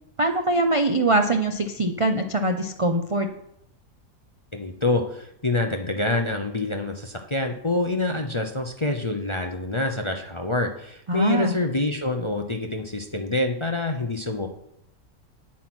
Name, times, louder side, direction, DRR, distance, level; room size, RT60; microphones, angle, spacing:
voice 1, 0.2-3.3 11.1-11.6, right 2 dB, 40° right, 6 dB, 0.5 m, -23 dB
voice 2, 4.5-14.5, left 2 dB, 25° left, 4 dB, 0.6 m, -26 dB
9.3 x 8.5 x 6.2 m, 0.77 s
omnidirectional pair, 1.6 m